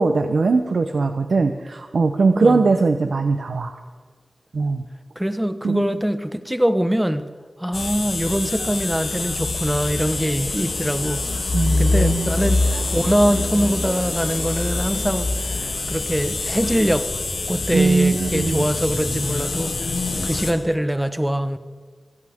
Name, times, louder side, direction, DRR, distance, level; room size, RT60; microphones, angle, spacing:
voice 1, 0.0-3.7 4.5-4.8 5.6-5.9 11.5-12.3 17.7-18.7, right 4 dB, 85° right, 6 dB, 0.9 m, -20 dB
voice 2, 2.3-2.8 5.2-7.3 7.6-11.3 11.8-17.1 17.5-19.9 20.2-21.6, equal, 5° right, 9 dB, 1.2 m, -23 dB
sound 1, 7.7-20.5, left 3 dB, 85° left, 2.6 m, -25 dB
24.5 x 16.0 x 3.7 m, 1.5 s
wide cardioid pair, 65°, 0 cm